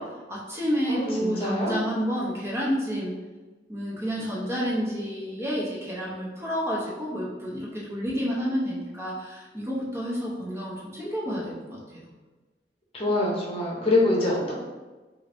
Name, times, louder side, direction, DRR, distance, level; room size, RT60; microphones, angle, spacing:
voice 1, 0.0-3.1 3.7-11.8, equal, 15° right, -6 dB, 0.7 m, -30 dB
voice 2, 0.9-1.8 12.9-14.5, left 2 dB, 30° left, -3 dB, 0.8 m, -25 dB
3.8 x 2.5 x 3.4 m, 1.2 s
head